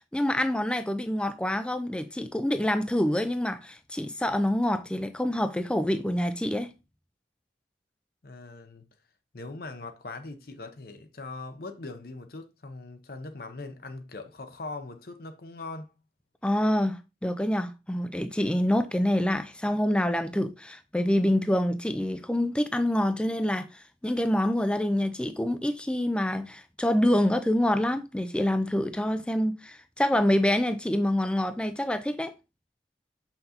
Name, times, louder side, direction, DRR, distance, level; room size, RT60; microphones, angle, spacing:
voice 1, 0.0-6.7 16.4-32.3, left 1 dB, 5° left, 0.3 m, -26 dB
voice 2, 8.2-8.8 9.3-15.9, left 3 dB, 55° left, 0.7 m, -41 dB
6.6 x 5.7 x 2.8 m
head